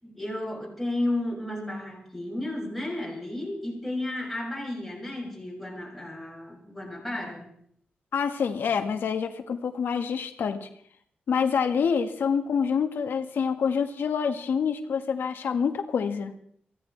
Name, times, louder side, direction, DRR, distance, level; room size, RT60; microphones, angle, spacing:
voice 1, 0.0-7.5, left 1 dB, 5° left, -4 dB, 6.5 m, -33 dB
voice 2, 8.1-10.7 11.3-16.3, left 6 dB, 90° left, 6 dB, 1.6 m, -27 dB
24.0 x 16.5 x 3.3 m, 0.65 s
wide cardioid pair, 145°, 3 cm